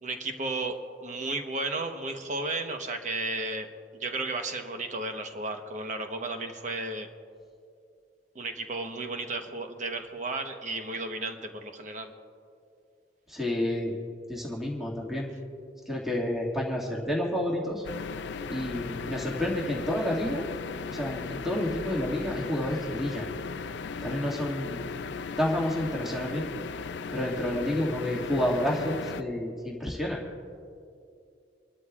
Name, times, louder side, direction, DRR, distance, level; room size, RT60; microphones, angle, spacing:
voice 1, 0.0-3.7 3.9-7.1 8.3-12.1, right 2 dB, 45° right, 5 dB, 1.1 m, -33 dB
voice 2, 13.3-13.9 14.3-15.3 15.9-17.9 18.5-20.5 20.9-23.3 24.0-24.9 25.4-26.5 27.1-30.2, left 1 dB, ahead, -4 dB, 2.0 m, -29 dB
sound 1, 17.8-29.2, left 5 dB, 85° left, 0.4 m, -37 dB
28.5 x 12.5 x 2.4 m, 2.4 s
head